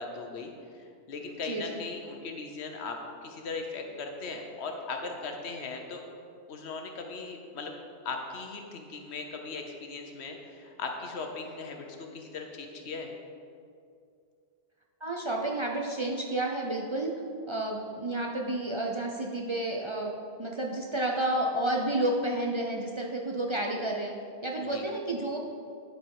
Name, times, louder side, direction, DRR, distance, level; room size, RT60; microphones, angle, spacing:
voice 1, 0.0-3.0 3.2-6.0 6.5-7.7 8.0-13.1 24.6-24.8, left 4 dB, 80° left, 3 dB, 1.1 m, -38 dB
voice 2, 1.4-1.8 15.0-17.1 17.5-20.1 20.4-24.1 24.4-25.4, right 1 dB, 35° right, -1 dB, 0.5 m, -30 dB
10.5 x 4.6 x 4.7 m, 2.4 s
omnidirectional pair, 1.1 m